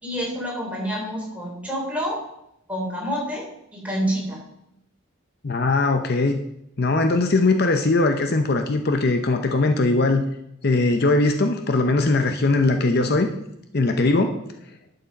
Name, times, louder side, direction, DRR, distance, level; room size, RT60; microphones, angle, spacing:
voice 1, 0.0-2.2 2.7-3.5 3.7-4.4, equal, 5° right, -4 dB, 3.8 m, -27 dB
voice 2, 5.4-6.4 6.8-10.2 10.6-13.3 13.7-14.4, left 2 dB, 50° left, 6 dB, 0.7 m, -20 dB
11.0 x 6.7 x 5.2 m, 0.79 s
head